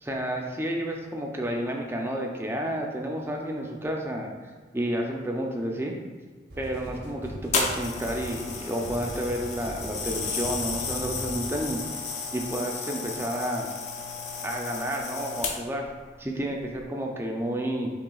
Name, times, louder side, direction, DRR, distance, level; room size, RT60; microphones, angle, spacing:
voice 1, 0.0-4.3 4.7-5.9 6.6-11.8 12.3-13.7 14.4-15.9 16.2-17.9, right 1 dB, 15° right, 1 dB, 0.4 m, -30 dB
sound 1, 6.5-12.0, equal, 70° right, 0.7 m, -40 dB
sound 2, 7.5-15.9 16.6-16.8, left 4 dB, 40° left, 0.5 m, -33 dB
5.7 x 3.2 x 2.3 m, 1.5 s
head